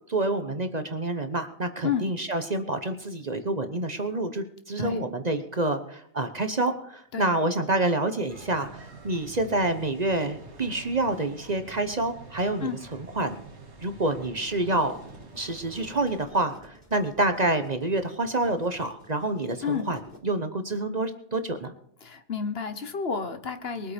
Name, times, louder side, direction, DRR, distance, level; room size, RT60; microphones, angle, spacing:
voice 1, 0.1-12.7 13.1-13.4 13.8-15.0 15.4-21.7, right 2 dB, 35° right, 8 dB, 1.1 m, -27 dB
sound 1, 8.3-16.2, right 3 dB, 60° right, 2.5 m, -47 dB
sound 2, 14.6-20.2, equal, 35° left, 4.2 m, -52 dB
voice 2, 22.0-23.9, left 6 dB, 55° left, 10 dB, 1.4 m, -30 dB
22.0 x 8.5 x 5.2 m, 0.67 s
omnidirectional pair, 1.3 m